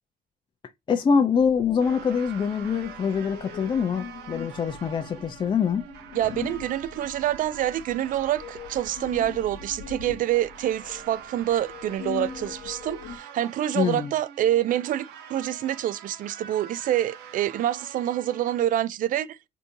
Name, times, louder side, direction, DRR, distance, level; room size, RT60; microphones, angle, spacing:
voice 1, 0.9-5.8 13.7-14.1, left 6 dB, 30° left, 0.5 m, -24 dB
sound 1, 1.3-13.2, left 8 dB, 80° left, 1.0 m, -41 dB
sound 2, 1.8-18.6, right 8 dB, 90° right, 0.8 m, -45 dB
voice 2, 6.1-19.4, right 12 dB, 55° right, 0.4 m, -26 dB
3.7 x 2.6 x 2.6 m
cardioid pair, 110°, 17 cm